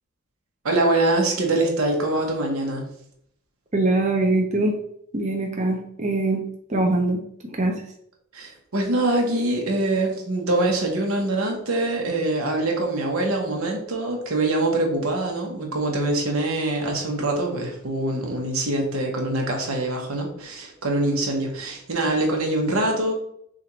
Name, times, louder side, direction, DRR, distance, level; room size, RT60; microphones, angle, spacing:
voice 1, 0.6-2.9 8.3-23.1, right 2 dB, 85° right, 1 dB, 1.1 m, -24 dB
voice 2, 3.7-4.8 5.1-6.4 6.7-7.8, right 2 dB, 35° right, 2 dB, 0.6 m, -23 dB
6.2 x 2.5 x 3.1 m, 0.70 s
head